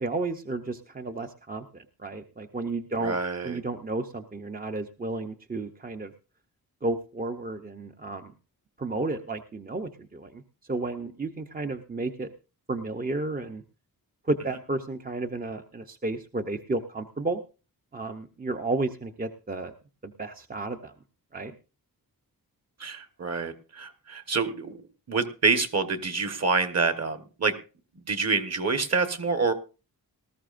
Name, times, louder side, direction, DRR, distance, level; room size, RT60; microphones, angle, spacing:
voice 1, 0.0-3.2 3.4-6.1 6.8-8.3 8.8-10.4 10.7-12.3 12.7-13.6 14.3-17.4 17.9-19.7 20.0-20.9 21.3-21.5, right 2 dB, 25° right, 5 dB, 0.7 m, -32 dB
voice 2, 3.0-3.6 22.8-24.8 25.1-27.5 28.1-29.5, right 4 dB, 45° right, 8 dB, 1.4 m, -27 dB
19.0 x 13.5 x 2.5 m, 0.33 s
wide cardioid pair, 140°, 37 cm